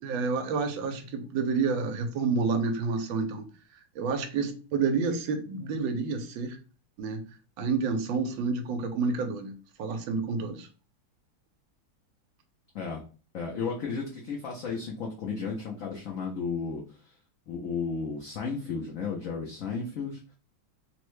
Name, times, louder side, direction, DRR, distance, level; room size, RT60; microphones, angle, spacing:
voice 1, 0.0-3.4 4.0-6.6 7.0-7.2 7.6-10.7, right 4 dB, 80° right, 7 dB, 1.3 m, -29 dB
voice 2, 13.3-16.8 17.5-20.2, left 5 dB, 80° left, -2 dB, 0.7 m, -33 dB
3.4 x 2.1 x 3.0 m, 0.36 s
omnidirectional pair, 2.2 m